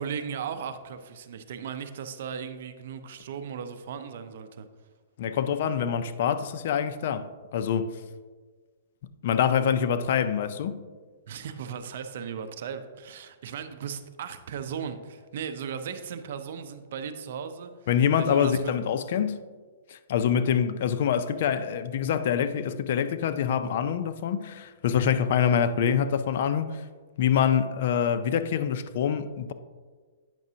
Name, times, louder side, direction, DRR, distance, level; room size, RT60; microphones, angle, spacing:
voice 1, 0.0-4.7 11.3-17.7 18.2-18.7, right 7 dB, 60° right, 0.6 m, -36 dB
voice 2, 5.2-7.9 9.2-10.8 17.9-19.4 19.9-26.7 27.2-29.5, left 8 dB, 55° left, 0.4 m, -25 dB
8.9 x 5.9 x 2.8 m
hypercardioid pair, 155°, 0 cm